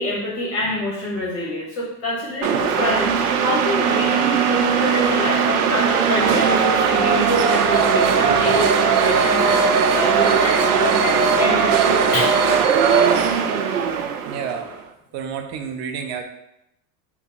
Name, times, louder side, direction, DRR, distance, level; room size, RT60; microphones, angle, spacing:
voice 1, 0.0-12.4, left 2 dB, 30° left, -3 dB, 1.0 m, -26 dB
sound 1, 2.4-14.7, right 6 dB, 85° right, 0.6 m, -18 dB
voice 2, 14.3-14.7 15.1-16.2, right 7 dB, 40° right, 5 dB, 0.5 m, -29 dB
3.4 x 2.1 x 4.1 m, 0.83 s
supercardioid pair, 110°, 44 cm